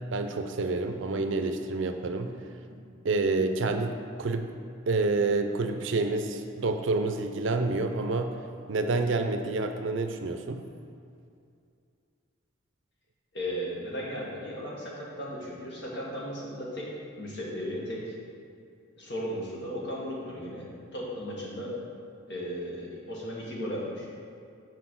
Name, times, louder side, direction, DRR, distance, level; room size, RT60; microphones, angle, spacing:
voice 1, 0.1-2.4 3.0-4.5 4.9-8.4 8.7-10.6, right 3 dB, 65° right, 6 dB, 0.5 m, -28 dB
voice 2, 13.3-16.9 17.2-18.1 19.0-20.6 20.9-21.8 22.3-24.1, equal, 60° left, -4 dB, 1.7 m, -36 dB
6.1 x 4.4 x 6.2 m, 2.4 s
head